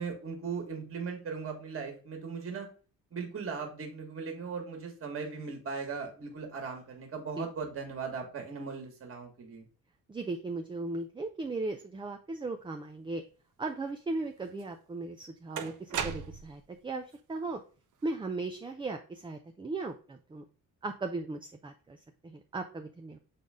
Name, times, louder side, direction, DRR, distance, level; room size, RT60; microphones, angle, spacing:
voice 1, 0.0-2.7 3.1-9.6, right 5 dB, 40° right, 3 dB, 1.8 m, -38 dB
voice 2, 10.1-13.2 13.6-17.6 18.0-20.4 20.8-23.2, right 3 dB, 15° right, 5 dB, 0.4 m, -37 dB
sound 1, 14.6-14.7 15.6-16.7, right 7 dB, 60° right, 0.9 m, -36 dB
6.7 x 4.0 x 3.6 m, 0.37 s
cardioid pair, 160°, 35 cm